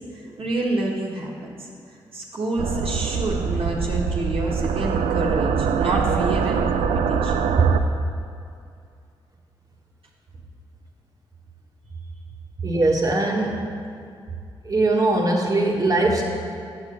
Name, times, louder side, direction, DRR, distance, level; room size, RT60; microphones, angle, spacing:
voice 1, 0.4-1.7 2.1-7.8, right 2 dB, 60° right, -4 dB, 1.4 m, -26 dB
sound 1, 2.6-7.8, right 6 dB, 75° right, 0.5 m, -24 dB
voice 2, 12.6-13.6 14.6-16.2, right 2 dB, 35° right, -2 dB, 1.6 m, -21 dB
6.5 x 6.4 x 6.9 m, 2.4 s
supercardioid pair, 40°, 11 cm